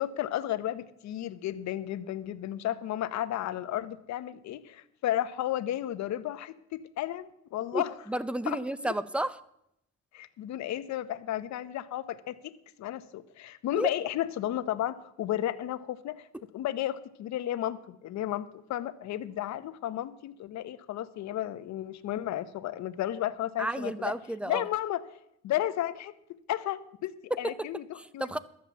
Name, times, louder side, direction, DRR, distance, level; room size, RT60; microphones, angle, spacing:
voice 1, 0.0-7.9 8.5-8.9 10.1-12.5 12.8-16.3 16.5-24.1 24.5-25.0 25.4-28.4, left 12 dB, 70° left, 13 dB, 0.9 m, -33 dB
voice 2, 7.7-9.4 13.7-13.9 23.6-24.7 27.3-27.7 28.0-28.4, right 1 dB, 5° right, 16 dB, 0.6 m, -32 dB
13.0 x 7.5 x 7.0 m, 0.78 s
cardioid pair, 110°, 29 cm